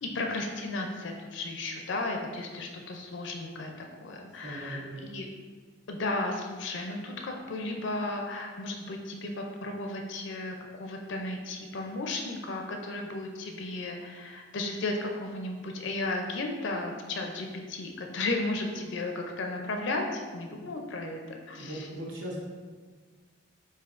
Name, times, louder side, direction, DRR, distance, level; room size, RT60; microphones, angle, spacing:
voice 1, 0.0-3.7 4.0-5.3 5.9-21.9, left 2 dB, 60° left, 2 dB, 0.4 m, -34 dB
voice 2, 4.4-5.1 21.6-22.4, right 1 dB, 65° right, -4 dB, 0.9 m, -38 dB
7.4 x 2.6 x 2.4 m, 1.5 s
head